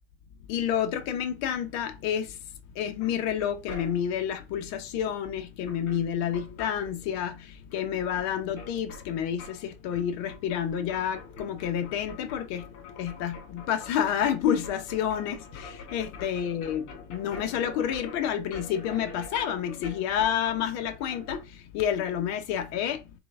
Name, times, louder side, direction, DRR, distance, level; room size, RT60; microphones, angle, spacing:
voice 1, 0.5-2.4 2.7-23.2, left 9 dB, 45° left, 0.9 m, -29 dB
sound 1, 3.0-4.3 5.3-5.4 5.6-7.4 7.7-21.4, left 3 dB, 75° left, 1.8 m, -46 dB
3.8 x 3.4 x 3.4 m
supercardioid pair, 160°, 37 cm